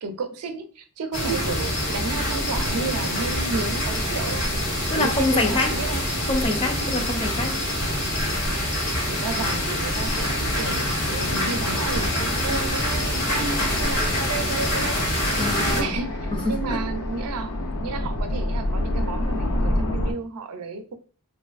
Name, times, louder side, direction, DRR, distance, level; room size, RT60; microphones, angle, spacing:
voice 1, 0.0-4.5 4.9-6.1 9.0-15.4 15.7-17.5 17.8-20.9, right 4 dB, 85° right, 0.4 m, -32 dB
sound 1, 1.1-15.8, equal, 70° left, 1.1 m, -25 dB
voice 2, 4.9-5.7 6.3-7.5 15.4-15.9 16.3-16.8, left 2 dB, 25° left, 0.4 m, -25 dB
sound 2, 6.2-20.1, left 1 dB, 90° left, 0.5 m, -30 dB
3.1 x 2.5 x 2.4 m
head